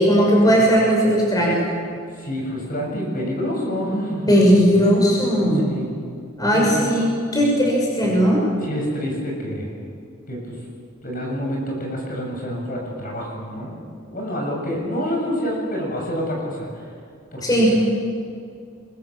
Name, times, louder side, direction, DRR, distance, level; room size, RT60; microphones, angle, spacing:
voice 1, 0.0-1.7 4.3-5.6 6.4-8.4 17.4-17.7, equal, 20° left, -3 dB, 6.3 m, -17 dB
voice 2, 2.1-4.3 5.6-5.9 6.5-7.0 8.6-9.8 10.3-10.6 11.0-13.8 14.1-16.9 17.3-17.7, equal, 45° left, -1 dB, 7.2 m, -27 dB
27.0 x 22.0 x 7.3 m, 2.3 s
head